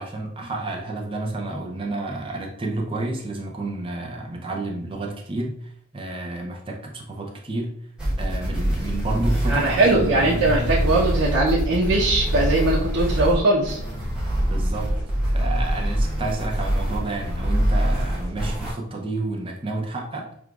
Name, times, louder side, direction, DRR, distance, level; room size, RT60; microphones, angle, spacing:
voice 1, 0.0-7.7 8.2-10.9 14.5-14.9 15.2-20.3, right 2 dB, 25° right, 1 dB, 0.6 m, -30 dB
sound 1, 8.0-18.7, equal, 5° right, 1.0 m, -24 dB
voice 2, 9.5-13.8, right 2 dB, 90° right, -6 dB, 0.8 m, -20 dB
6.3 x 2.4 x 2.4 m, 0.68 s
head